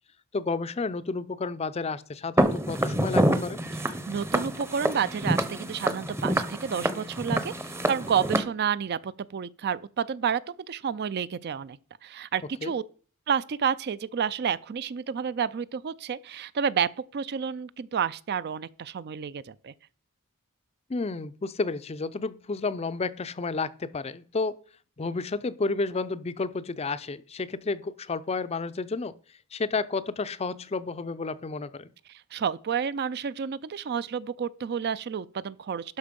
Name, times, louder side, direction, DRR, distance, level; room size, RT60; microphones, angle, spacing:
voice 1, 0.3-3.6 12.6-12.7 20.9-24.6 25.0-29.1 29.5-31.9, left 3 dB, 30° left, 0.4 m, -31 dB
Walk footsteps, 2.4-8.4, right 1 dB, 10° right, 0.7 m, -27 dB
voice 2, 4.1-11.8 12.0-12.8 13.3-19.7 32.3-36.0, right 7 dB, 50° right, 0.4 m, -30 dB
12.0 x 5.4 x 5.2 m
head